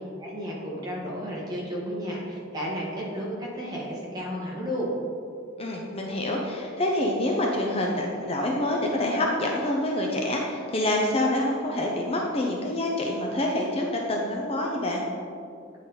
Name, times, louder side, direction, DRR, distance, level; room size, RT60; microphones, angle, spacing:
voice 1, 0.2-4.9, equal, 20° right, -5 dB, 1.5 m, -32 dB
voice 2, 5.6-15.0, left 1 dB, 30° left, -1 dB, 0.6 m, -26 dB
8.9 x 4.1 x 4.2 m, 2.3 s
head